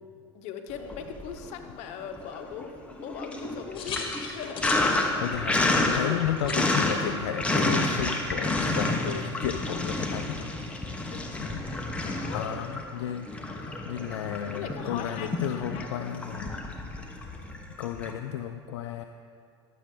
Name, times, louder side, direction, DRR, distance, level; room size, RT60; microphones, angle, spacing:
voice 1, 0.3-4.7 6.0-6.2 11.1-11.5 12.0-12.5 14.5-15.3 15.7-16.1, left 7 dB, 55° left, 5 dB, 0.9 m, -39 dB
Sink (filling or washing), 0.8-1.7 2.0-18.1, left 2 dB, 10° left, 1.1 m, -30 dB
sound 1, 3.4-8.1, left 4 dB, 35° left, 1.8 m, -40 dB
voice 2, 5.2-5.6 5.9-10.5 11.4-11.6 12.3-13.3 13.9-16.6 17.8-19.0, left 10 dB, 75° left, 7 dB, 0.4 m, -33 dB
11.5 x 7.5 x 3.8 m, 2.4 s
hypercardioid pair, 85°, 14 cm